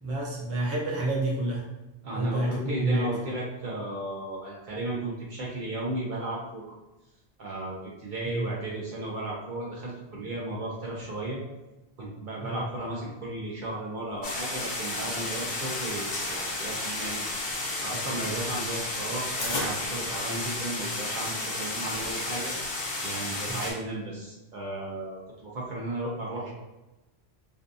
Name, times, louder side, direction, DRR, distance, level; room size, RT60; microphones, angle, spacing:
voice 1, 0.0-1.6 2.1-3.1 8.2-8.4 12.5-12.6 23.5-23.6, right 2 dB, 20° right, -5 dB, 0.4 m, -28 dB
voice 2, 2.0-6.6 7.4-11.4 12.0-17.2 17.8-22.5 23.0-26.5, right 2 dB, 55° right, -4 dB, 0.7 m, -34 dB
sound 1, 14.2-23.7, left 2 dB, 65° left, 0.8 m, -32 dB
sound 2, 14.6-15.5 15.8-16.5 17.1-20.6, left 1 dB, 45° left, 0.4 m, -37 dB
2.5 x 2.2 x 2.5 m, 1.0 s
omnidirectional pair, 1.1 m